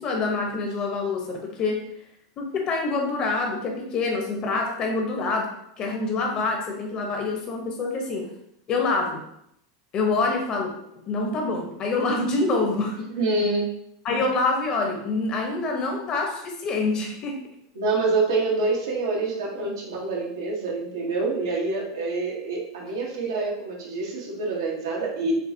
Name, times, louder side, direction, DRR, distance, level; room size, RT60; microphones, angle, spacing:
voice 1, 0.0-1.8 2.4-5.5 5.8-8.3 8.7-9.2 9.9-10.7 11.1-13.1 14.0-17.4, left 3 dB, 40° left, 2 dB, 1.1 m, -26 dB
voice 2, 13.1-13.7 17.7-25.3, right 3 dB, 85° right, -3 dB, 1.2 m, -26 dB
6.5 x 2.3 x 2.8 m, 0.75 s
hypercardioid pair, 105°, 2 cm